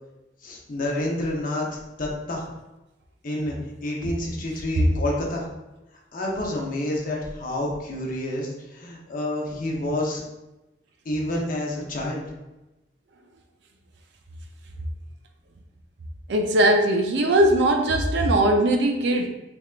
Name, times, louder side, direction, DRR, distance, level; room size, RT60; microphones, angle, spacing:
voice 1, 0.4-1.7 2.0-2.5 3.2-3.5 3.8-5.4 6.1-10.2 11.1-12.3, left 1 dB, 50° left, -2 dB, 0.7 m, -28 dB
voice 2, 16.3-19.3, right 1 dB, 70° right, 3 dB, 0.5 m, -20 dB
3.4 x 3.3 x 2.4 m, 1.0 s
head